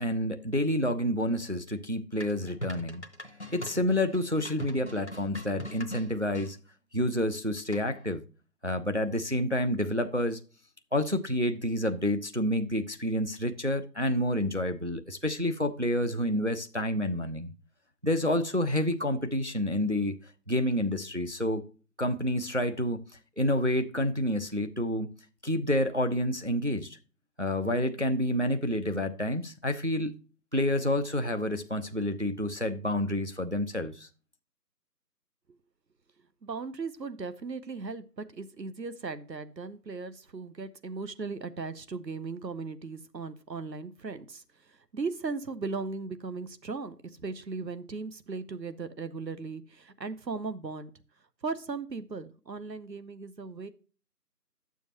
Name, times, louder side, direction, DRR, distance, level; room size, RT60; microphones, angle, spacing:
voice 1, 0.0-3.0 3.5-6.6 6.9-8.2 8.6-10.4 10.9-17.5 18.0-20.2 20.5-21.6 22.0-23.0 23.4-25.1 25.4-26.9 27.4-30.2 30.5-34.1, left 1 dB, 45° right, 0.5 m, -29 dB
sound 1, 2.2-6.5 7.7-8.1, left 1 dB, 45° left, 0.8 m, -41 dB
voice 2, 36.4-50.9 51.4-53.7, right 4 dB, 80° right, 0.9 m, -37 dB
10.5 x 7.1 x 2.9 m
figure-of-eight pair, 170°, 49 cm